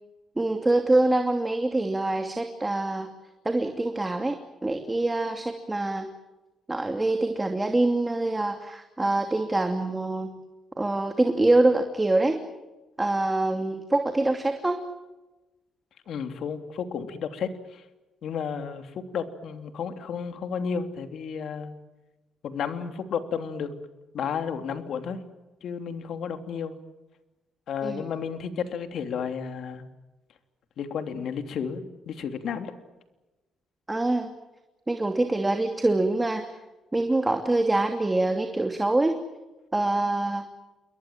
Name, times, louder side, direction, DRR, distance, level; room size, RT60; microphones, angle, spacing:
voice 1, 0.4-3.1 3.4-6.1 6.7-10.3 10.8-12.4 13.0-14.8 27.8-28.1 33.9-34.3 34.9-36.5 36.9-39.2 39.7-40.4, right 2 dB, 15° right, 5 dB, 2.7 m, -25 dB
voice 2, 16.1-17.8 18.2-18.9 19.1-21.7 22.4-23.7 24.1-25.2 25.6-26.8 27.7-29.9 30.8-32.7, left 6 dB, 70° left, 7 dB, 3.1 m, -32 dB
28.5 x 23.0 x 7.5 m, 1.1 s
cardioid pair, 90°, 0 cm